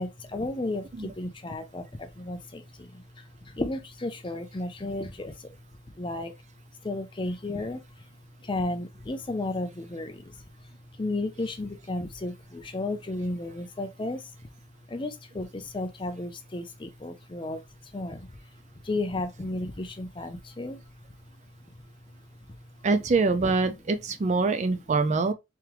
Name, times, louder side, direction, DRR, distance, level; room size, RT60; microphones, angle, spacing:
voice 1, 0.0-5.5 6.0-6.3 6.8-8.1 8.4-14.5 14.9-18.4 18.8-20.9 21.7-21.8 22.1-22.2 22.5-22.7, left 2 dB, 25° left, 0.5 m, -34 dB
voice 2, 22.8-25.3, right 3 dB, 35° right, 0.3 m, -24 dB
3.5 x 3.3 x 3.0 m
head